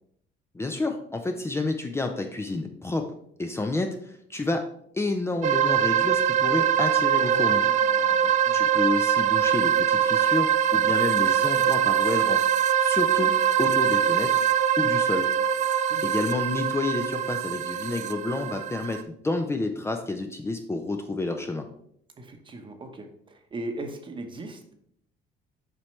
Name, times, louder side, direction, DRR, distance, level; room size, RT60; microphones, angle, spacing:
voice 1, 0.5-3.1 3.4-4.6 4.9-7.6 8.5-12.4 12.8-13.3 13.6-14.4 14.8-15.3 16.0-21.6, left 2 dB, 15° left, 4 dB, 0.6 m, -29 dB
sound 1, 5.4-19.0, right 9 dB, 45° right, 0.4 m, -23 dB
voice 2, 7.2-8.7 15.9-16.1 22.2-24.7, right 2 dB, 30° right, 6 dB, 1.0 m, -39 dB
7.4 x 4.9 x 3.2 m, 0.69 s
cardioid pair, 110°, 17 cm